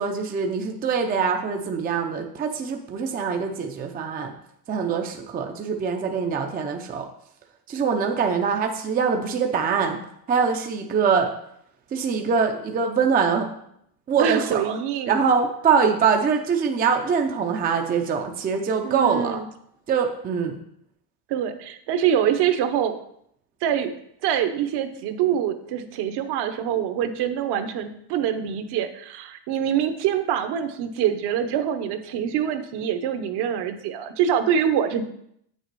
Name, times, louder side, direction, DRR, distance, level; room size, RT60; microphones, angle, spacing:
voice 1, 0.0-4.3 4.7-7.1 7.7-10.0 10.3-11.3 11.9-13.5 14.1-14.8 15.1-19.4 19.9-20.5, right 6 dB, 20° right, 4 dB, 0.5 m, -23 dB
voice 2, 14.2-15.3 18.8-19.5 21.3-23.0 23.6-23.9 24.2-35.0, right 9 dB, 55° right, 8 dB, 1.0 m, -25 dB
8.0 x 6.7 x 4.6 m, 0.72 s
cardioid pair, 160°, 47 cm